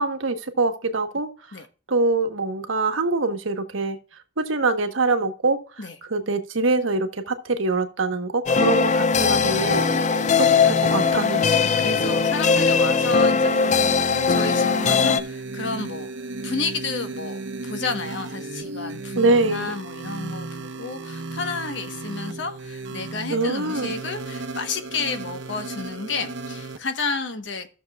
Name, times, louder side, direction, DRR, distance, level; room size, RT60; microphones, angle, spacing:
voice 1, 0.0-1.6 1.9-4.0 4.4-5.6 6.1-9.8 10.4-11.5 19.2-19.7 23.3-23.9, right 3 dB, 85° right, 1.1 m, -24 dB
sound 1, 8.5-15.2, left 5 dB, 40° left, 0.4 m, -20 dB
sound 2, 9.2-26.8, right 2 dB, 65° right, 0.7 m, -34 dB
voice 2, 11.6-16.1 16.4-27.7, left 4 dB, 65° left, 1.1 m, -31 dB
15.0 x 6.6 x 2.3 m
head